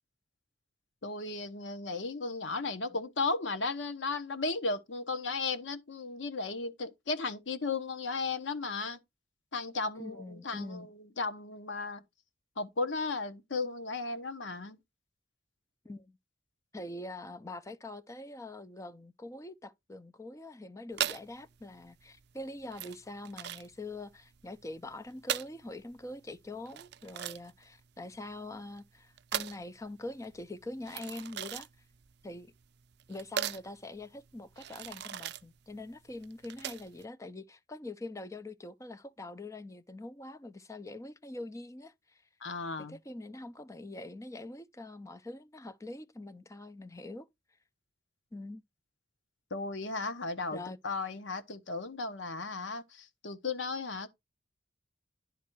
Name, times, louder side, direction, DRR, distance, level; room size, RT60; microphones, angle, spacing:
voice 1, 1.0-9.0 9.5-12.0 12.6-14.8 42.4-43.0 49.5-54.1, left 3 dB, 85° left, 1.0 m, -35 dB
voice 2, 10.0-10.9 15.8-16.2 16.7-31.7 32.2-32.5 33.1-42.2 42.9-47.3 48.3-48.6 50.5-50.8, left 2 dB, 15° left, 0.5 m, -44 dB
sound 1, 20.9-37.0, right 10 dB, 60° right, 0.4 m, -40 dB
10.5 x 3.7 x 4.5 m
head